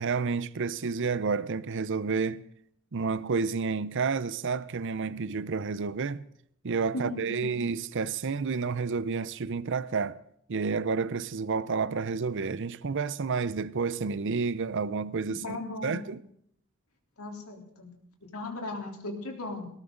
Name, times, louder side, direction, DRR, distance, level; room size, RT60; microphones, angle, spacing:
voice 1, 0.0-2.4 2.9-6.2 6.6-10.2 10.5-15.6 15.8-16.2, right 5 dB, 60° right, 0.6 m, -30 dB
voice 2, 6.9-7.5 15.4-16.1 17.2-17.9 18.2-19.7, left 2 dB, 85° left, 3.6 m, -37 dB
19.5 x 18.5 x 3.9 m
head